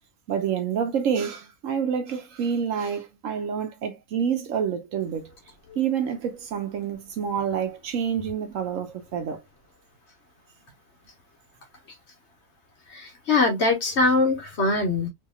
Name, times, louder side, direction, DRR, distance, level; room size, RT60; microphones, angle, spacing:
voice 1, 0.3-5.3 5.8-9.4, right 7 dB, 65° right, 1.0 m, -28 dB
voice 2, 12.9-15.1, left 3 dB, 55° left, 1.1 m, -22 dB
2.9 x 2.8 x 2.3 m
omnidirectional pair, 1.6 m